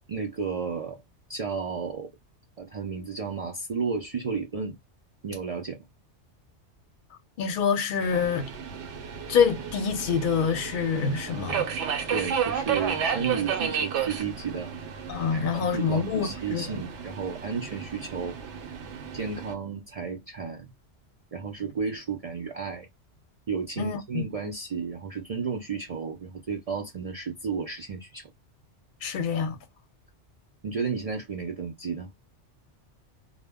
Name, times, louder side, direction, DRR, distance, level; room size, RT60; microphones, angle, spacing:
voice 1, 0.1-1.0 1.3-2.1 2.6-4.8 5.2-5.9 12.1-14.7 15.3-18.4 19.1-20.7 21.3-22.9 23.5-28.3 30.6-32.1, right 5 dB, 60° right, 0.3 m, -32 dB
voice 2, 7.4-8.5 9.3-11.7 15.1-16.6 23.8-24.2 29.0-29.6, left 6 dB, 55° left, 0.7 m, -26 dB
Subway metro underground, 8.0-19.5, right 7 dB, 80° right, 0.9 m, -33 dB
2.1 x 2.0 x 3.4 m
omnidirectional pair, 1.2 m